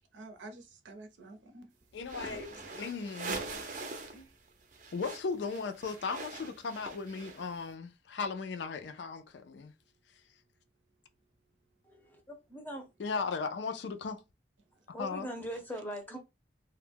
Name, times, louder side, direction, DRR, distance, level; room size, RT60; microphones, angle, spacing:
voice 1, 0.1-1.7 2.2-2.4 4.1-4.3 15.4-15.5, right 2 dB, 90° right, 0.6 m, -50 dB
voice 2, 1.9-3.4 4.9-9.7 13.0-14.2 15.0-15.3, left 4 dB, 75° left, 0.4 m, -37 dB
sound 1, 2.0-4.2 4.5-7.6, right 3 dB, 45° right, 0.5 m, -42 dB
voice 3, 11.8-12.9 14.8-16.2, equal, 10° left, 0.6 m, -41 dB
2.2 x 2.1 x 3.3 m
head